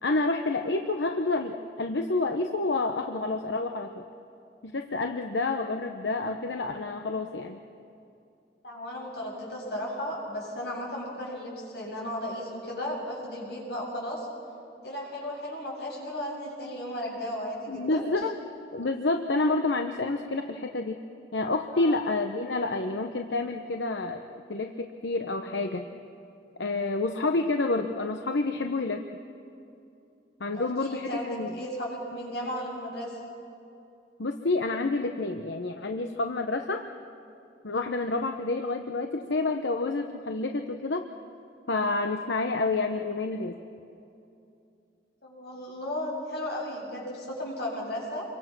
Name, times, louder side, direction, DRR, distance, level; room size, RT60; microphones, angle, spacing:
voice 1, 0.0-4.0 4.6-7.6 17.7-18.3 18.7-21.0 21.3-24.2 24.5-25.9 26.6-29.1 30.4-31.5 34.2-36.9 37.6-41.1 41.7-43.6, left 3 dB, 90° left, 5 dB, 0.9 m, -29 dB
voice 2, 8.6-14.3 14.8-18.0 21.7-22.0 30.5-33.2 45.2-48.3, left 1 dB, 65° left, -3 dB, 7.7 m, -35 dB
28.0 x 23.5 x 6.1 m, 2.7 s
head